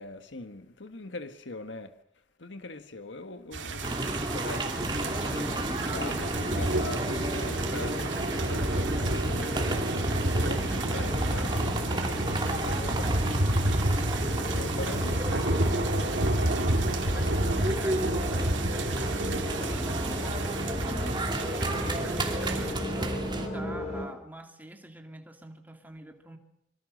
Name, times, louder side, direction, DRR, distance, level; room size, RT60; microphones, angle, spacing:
voice 1, 0.0-1.9 2.4-10.0 10.3-13.6 14.5-15.5, left 2 dB, 85° left, 1.5 m, -42 dB
sound 1, 3.5-22.7, right 1 dB, 80° right, 2.6 m, -30 dB
sound 2, 3.8-23.5, right 1 dB, 25° right, 2.8 m, -33 dB
sound 3, 4.7-24.1, equal, 35° left, 5.6 m, -39 dB
voice 2, 16.9-21.3 21.8-26.4, right 1 dB, 10° right, 2.5 m, -45 dB
25.0 x 23.0 x 6.5 m
head